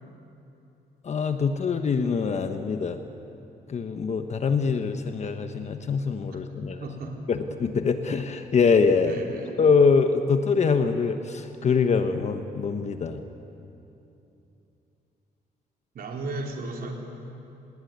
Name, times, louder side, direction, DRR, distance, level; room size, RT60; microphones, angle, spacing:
voice 1, 1.0-3.0 3.7-6.8 7.3-9.2 9.6-13.2, left 5 dB, 45° left, 7 dB, 1.2 m, -24 dB
voice 2, 6.8-7.2 9.0-9.6 15.9-16.9, right 2 dB, 65° right, 1 dB, 4.3 m, -35 dB
28.5 x 20.5 x 9.5 m, 2.9 s
cardioid pair, 130°, 17 cm